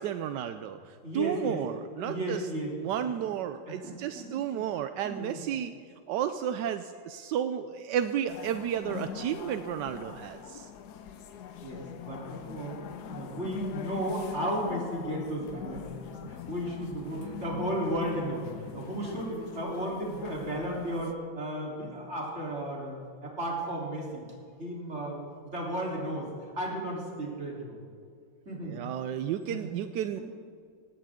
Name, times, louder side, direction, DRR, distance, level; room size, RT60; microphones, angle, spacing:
voice 1, 0.0-2.4 2.8-5.7 6.1-10.7 28.6-30.2, right 9 dB, 75° right, 10 dB, 1.0 m, -32 dB
voice 2, 1.0-1.6 2.0-3.3 3.7-4.6 5.0-5.4 11.6-12.8 13.1-24.2 24.6-27.8 28.5-28.9 29.5-29.7 30.2-30.3, right 1 dB, 30° right, -3 dB, 3.8 m, -34 dB
sound 1, 8.3-21.1, left 8 dB, 60° left, 1.2 m, -42 dB
19.0 x 16.5 x 3.7 m, 2.2 s
omnidirectional pair, 2.3 m